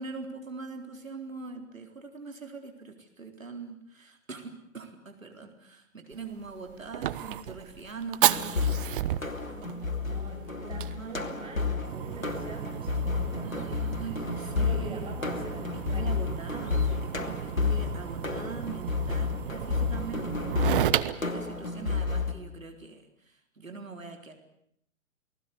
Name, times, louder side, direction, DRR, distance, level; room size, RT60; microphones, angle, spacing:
voice 1, 0.0-9.8 10.1-10.2 10.6-11.3 13.4-15.6 15.9-24.3, right 4 dB, 80° right, 4 dB, 4.1 m, -43 dB
Fire, 6.1-22.3, right 12 dB, 40° right, 1.1 m, -34 dB
sound 1, 8.3-22.3, left 4 dB, 85° left, 2.8 m, -31 dB
voice 2, 10.0-13.5 14.6-16.3, right 2 dB, 15° right, 2 dB, 6.2 m, -44 dB
29.0 x 19.0 x 8.3 m, 0.72 s
figure-of-eight pair, 120°, 40 cm